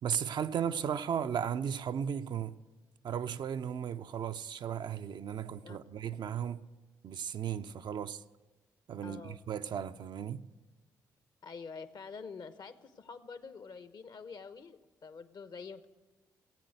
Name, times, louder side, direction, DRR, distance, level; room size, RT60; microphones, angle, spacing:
voice 1, 0.0-2.6 3.0-6.7 7.0-8.2 8.9-10.4, right 8 dB, 55° right, 0.5 m, -35 dB
voice 2, 9.0-9.4 11.4-15.9, left 5 dB, 50° left, 1.0 m, -47 dB
17.0 x 8.8 x 8.0 m
hypercardioid pair, 40°, 9 cm